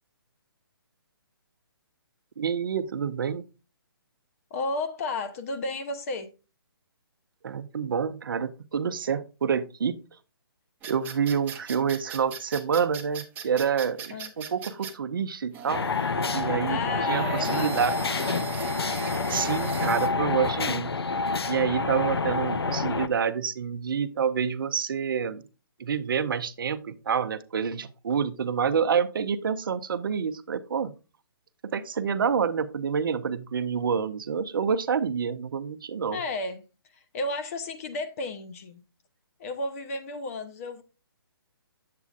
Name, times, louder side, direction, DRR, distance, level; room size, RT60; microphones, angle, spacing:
voice 1, 2.4-3.4 7.4-10.0 10.8-15.9 16.3-16.8 17.1-18.0 18.2-18.5 19.3-20.9 21.5-25.4 25.8-30.9 31.6-36.2, right 7 dB, 60° right, 0.6 m, -28 dB
voice 2, 4.5-6.3 14.1-14.3 16.7-17.7 36.1-36.6 36.9-38.8 39.4-40.8, left 2 dB, 35° left, 0.9 m, -33 dB
sound 1, 10.8-14.9 15.5-20.1, right 8 dB, 15° right, 0.8 m, -39 dB
sound 2, 15.7-23.1, left 4 dB, 80° left, 0.6 m, -28 dB
8.0 x 7.6 x 2.4 m
hypercardioid pair, 145°, 13 cm